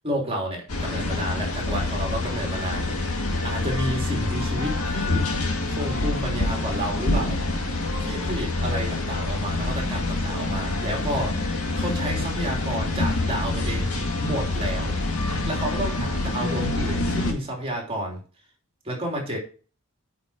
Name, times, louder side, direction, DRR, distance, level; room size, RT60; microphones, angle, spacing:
voice 1, 0.0-3.1 3.4-5.2 5.7-7.4 8.0-11.4 11.7-14.9 15.5-18.2 18.8-19.4, right 1 dB, 25° right, 0 dB, 3.2 m, -30 dB
sound 1, 0.7-17.3, left 2 dB, 85° left, 2.0 m, -26 dB
9.0 x 5.7 x 5.0 m, 0.38 s
head